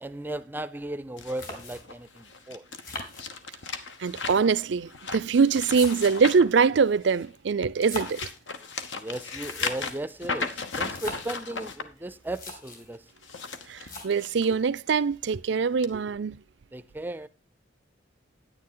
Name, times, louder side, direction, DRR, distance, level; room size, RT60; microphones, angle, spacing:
voice 1, 0.0-2.6 8.9-13.0 16.7-17.3, right 1 dB, 10° right, 0.5 m, -36 dB
sound 1, 1.2-7.3 7.8-11.8 13.1-14.5 14.9-15.2 15.8-15.9, left 4 dB, 70° left, 1.1 m, -36 dB
sound 2, 1.4-2.1 2.8-3.8 4.7-6.4 7.6-8.4 9.3-10.1 10.8-11.4 12.0-12.1 12.2-12.9 13.8-14.4, left 3 dB, 45° left, 3.0 m, -40 dB
voice 2, 4.0-8.3 13.7-16.4, right 5 dB, 65° right, 0.4 m, -23 dB
9.7 x 9.6 x 3.9 m
head